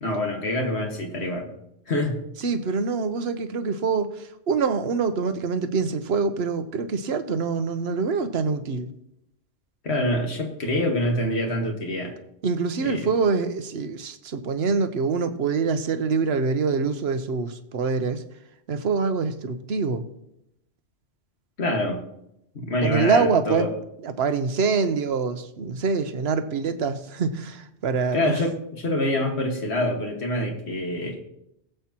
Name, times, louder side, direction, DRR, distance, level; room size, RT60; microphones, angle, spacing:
voice 1, 0.0-1.5 1.9-2.2 9.8-12.1 12.8-13.1 21.6-22.0 22.5-23.7 28.1-31.2, left 1 dB, 65° left, 2 dB, 2.0 m, -26 dB
voice 2, 2.4-4.1 4.5-8.9 12.4-18.2 18.7-20.1 22.8-23.7 24.0-28.4, right 5 dB, 65° right, 9 dB, 1.1 m, -25 dB
20.0 x 7.9 x 3.0 m, 0.82 s
omnidirectional pair, 1.2 m